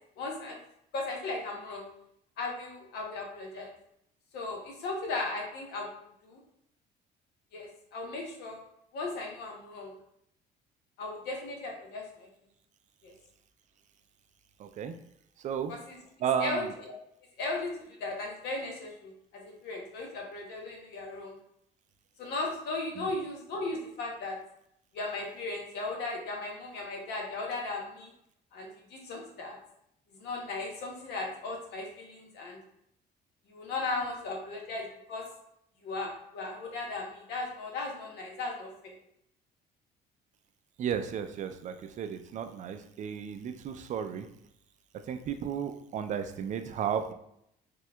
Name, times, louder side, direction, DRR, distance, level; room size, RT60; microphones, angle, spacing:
voice 1, 0.2-0.6 0.9-1.9 2.4-3.7 4.3-6.4 7.5-8.6 8.9-9.9 11.0-12.3 13.0-13.1 15.7-16.9 17.4-21.4 22.2-24.4 24.9-28.1 28.5-29.6 30.1-32.6 33.5-35.2 35.8-38.9, left 3 dB, 80° left, 0 dB, 0.9 m, -37 dB
voice 2, 14.6-15.0 15.4-15.7 16.2-16.7 23.0-23.1 40.8-44.3 44.9-47.1, right 8 dB, 45° right, 8 dB, 0.4 m, -34 dB
4.4 x 2.3 x 2.2 m, 0.75 s
cardioid pair, 110°, 17 cm